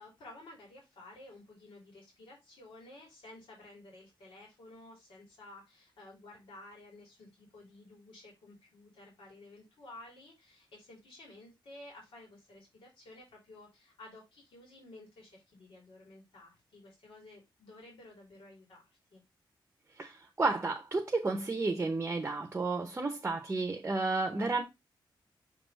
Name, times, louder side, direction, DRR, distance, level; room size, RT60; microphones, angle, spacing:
voice 1, 0.0-19.2, left 2 dB, 85° left, 3.1 m, -53 dB
voice 2, 20.0-24.6, right 3 dB, 25° right, 0.8 m, -32 dB
6.6 x 3.5 x 4.0 m
wide cardioid pair, 140°, 8 cm